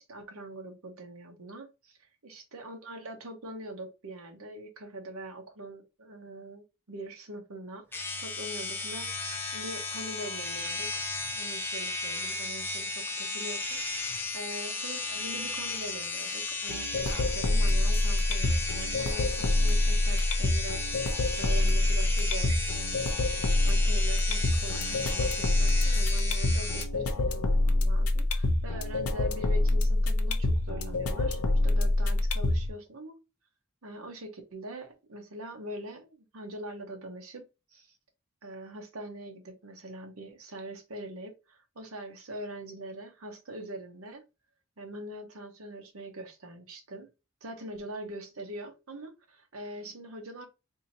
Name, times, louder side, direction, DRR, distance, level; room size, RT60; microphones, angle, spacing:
voice 1, 0.0-2.0 2.2-9.1 9.5-11.0 11.3-20.9 21.4-23.2 23.7-33.2 33.8-37.4 37.7-37.9 38.4-44.2 44.8-47.1 47.4-50.5, right 1 dB, 70° right, 0.8 m, -43 dB
sound 1, 7.9-26.8, left 3 dB, 10° left, 0.5 m, -35 dB
sound 2, 16.7-32.7, left 2 dB, 80° left, 0.6 m, -26 dB
4.1 x 2.7 x 2.7 m
head